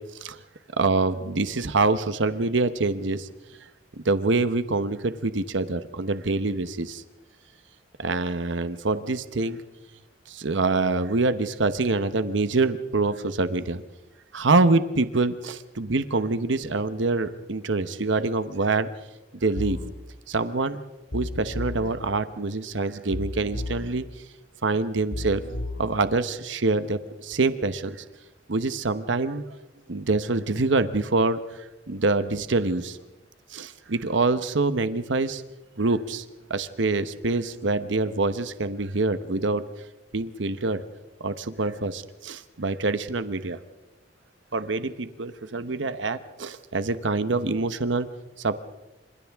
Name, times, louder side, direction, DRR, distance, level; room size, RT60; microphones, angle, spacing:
voice 1, 0.8-3.3 3.9-7.0 8.0-9.6 10.3-13.8 14.3-18.9 19.4-19.8 20.3-20.8 21.1-24.0 24.6-25.4 25.8-28.0 28.5-29.4 29.9-33.0 33.5-35.4 35.8-36.2 36.5-39.6 40.1-40.8 41.2-43.6 44.5-48.1 48.4-48.6, right 3 dB, 80° right, 11 dB, 0.9 m, -25 dB
sound 1, 19.6-19.9 21.1-21.9 23.1-23.9 25.1-25.9, left 2 dB, 70° left, 2.0 m, -32 dB
29.0 x 26.5 x 3.6 m, 1.0 s
head